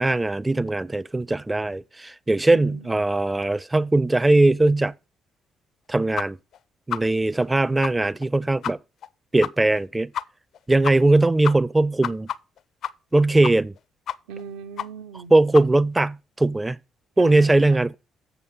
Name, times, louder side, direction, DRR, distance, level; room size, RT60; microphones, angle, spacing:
voice 1, 0.0-4.9 5.9-6.4 6.9-8.8 9.3-10.1 10.7-12.3 13.1-13.7 15.3-16.8 17.2-17.9, right 2 dB, 15° right, 0.4 m, -20 dB
voice 2, 2.5-3.1 14.3-15.3 17.2-17.8, right 7 dB, 65° right, 0.6 m, -39 dB
sound 1, 6.2-6.3 6.5-6.6 6.9-7.0 7.4-7.5 7.8-7.9 8.2-8.3 8.6-8.7 9.0-9.1 9.4-9.5 9.8-9.9 10.1-10.2 10.5-10.6 10.8-11.2 11.4-13.2 13.4-13.8 14.1-14.4 14.8-14.9 15.1-15.2 15.5-15.7, left 9 dB, 50° left, 0.4 m, -29 dB
8.1 x 6.8 x 5.3 m
figure-of-eight pair, 45°, 0 cm